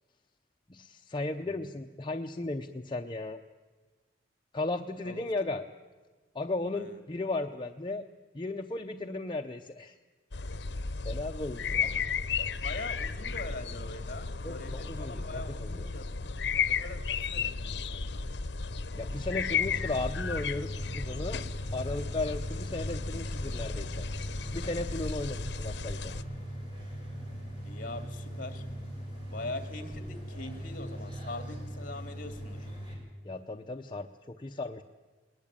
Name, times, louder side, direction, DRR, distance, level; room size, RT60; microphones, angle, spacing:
voice 1, 0.7-3.4 4.5-5.6 6.3-8.0 8.3-10.0 11.0-11.8 14.4-15.9 18.9-20.7 20.9-21.4 21.7-24.0 24.5-26.1 33.2-34.8, left 2 dB, 25° left, 4 dB, 0.7 m, -35 dB
sound 1, 10.3-26.2, left 5 dB, 70° left, 0.8 m, -34 dB
voice 2, 11.7-12.1 12.4-18.2 27.6-28.7 29.3-32.7, left 2 dB, 50° left, 9 dB, 2.4 m, -43 dB
sound 2, 19.1-32.9, equal, 30° right, 6.2 m, -40 dB
21.0 x 19.5 x 8.8 m, 1.3 s
head